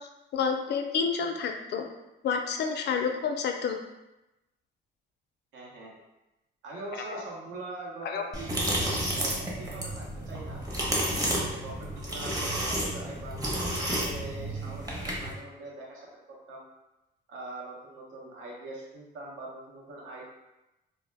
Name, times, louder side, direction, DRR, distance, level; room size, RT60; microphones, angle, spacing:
voice 1, 0.3-1.9 2.2-3.7 7.1-7.2 8.0-8.2, left 6 dB, 60° left, 4 dB, 0.4 m, -29 dB
voice 2, 5.5-6.0 6.6-8.5 9.1-10.6 11.1-13.4 13.8-16.7 17.3-20.2, right 2 dB, 80° right, -3 dB, 0.8 m, -43 dB
sound 1, 8.3-15.3, right 1 dB, 20° right, 0.7 m, -31 dB
2.1 x 2.0 x 3.2 m, 0.96 s
cardioid pair, 90°, 20 cm